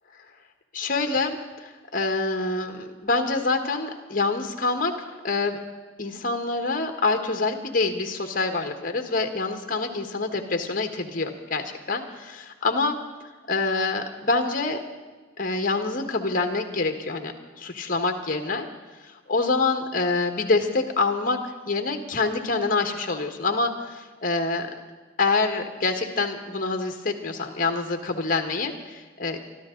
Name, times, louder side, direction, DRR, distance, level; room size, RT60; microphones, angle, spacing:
voice 1, 0.7-4.9 5.2-5.6 6.0-13.0 13.5-14.8 15.4-17.3 17.6-18.7 19.3-21.4 21.7-24.7 25.2-29.5, left 3 dB, 45° left, 5 dB, 1.5 m, -26 dB
23.5 x 13.0 x 3.9 m, 1.4 s
head